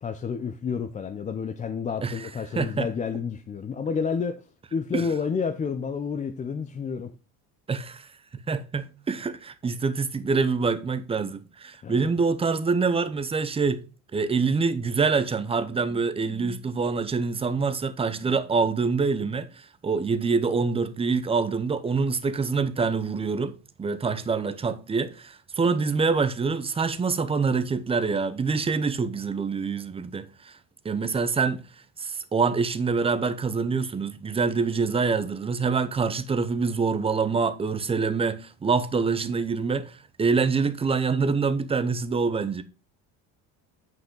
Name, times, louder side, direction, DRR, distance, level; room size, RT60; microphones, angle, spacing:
voice 1, 0.0-7.2 11.8-12.1, left 6 dB, 25° left, 0.6 m, -30 dB
voice 2, 2.6-2.9 4.9-5.0 7.7-13.8 14.1-30.6 30.8-31.6 32.0-42.6, right 4 dB, 15° right, 0.7 m, -26 dB
9.1 x 5.6 x 3.8 m
cardioid pair, 145°, 33 cm